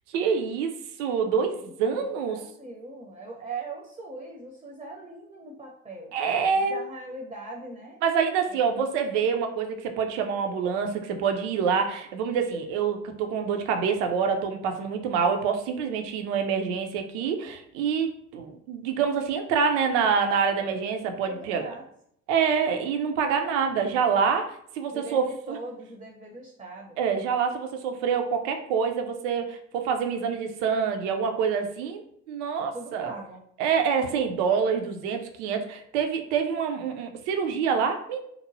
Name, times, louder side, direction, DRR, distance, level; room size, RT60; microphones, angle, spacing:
voice 1, 0.1-2.4 6.1-6.8 8.0-21.7 22.3-25.6 27.0-33.1 33.6-38.2, right 6 dB, 75° right, 5 dB, 0.5 m, -26 dB
voice 2, 1.4-6.2 6.5-8.0 8.5-8.7 21.3-21.9 24.9-27.0 32.7-33.4, right 3 dB, 15° right, 0 dB, 0.5 m, -41 dB
3.0 x 2.1 x 2.6 m, 0.69 s
hypercardioid pair, 55°, 36 cm